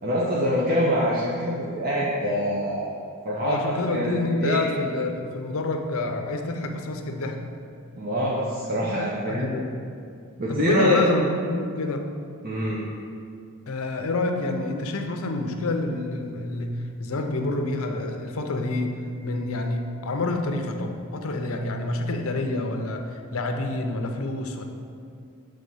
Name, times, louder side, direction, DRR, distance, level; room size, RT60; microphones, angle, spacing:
voice 1, 0.0-3.0 3.2-4.6 7.9-9.5 10.4-11.0 12.4-12.8, equal, 40° right, -6 dB, 0.8 m, -25 dB
voice 2, 3.4-7.4 9.2-9.7 10.5-12.1 13.7-24.6, left 2 dB, 65° left, 4 dB, 0.6 m, -28 dB
7.4 x 3.5 x 5.5 m, 2.4 s
head